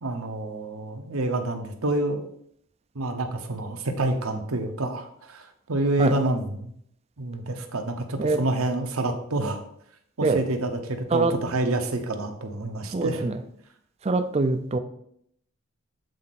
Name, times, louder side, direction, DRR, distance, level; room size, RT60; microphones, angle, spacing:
voice 1, 0.0-2.2 2.9-6.7 7.2-9.6 10.2-13.2, right 2 dB, 80° right, 5 dB, 1.0 m, -28 dB
voice 2, 12.9-13.4 14.0-14.8, right 3 dB, 30° right, 9 dB, 0.5 m, -24 dB
7.9 x 4.2 x 4.2 m, 0.71 s
head